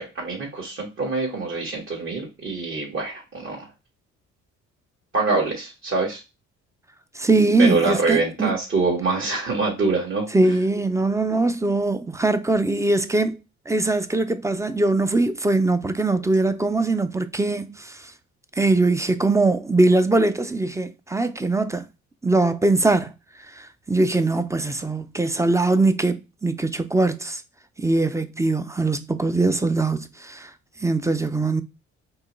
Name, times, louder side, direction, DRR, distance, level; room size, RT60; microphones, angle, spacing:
voice 1, 0.0-3.7 5.1-6.2 7.6-10.3, right 3 dB, 45° right, 1.8 m, -25 dB
voice 2, 7.1-8.5 10.3-13.4 13.7-18.1 18.6-21.8 22.2-23.1 23.5-27.4 27.8-30.5 30.8-31.6, right 2 dB, 10° right, 0.5 m, -21 dB
4.6 x 3.0 x 3.1 m
cardioid pair, 85°, 30 cm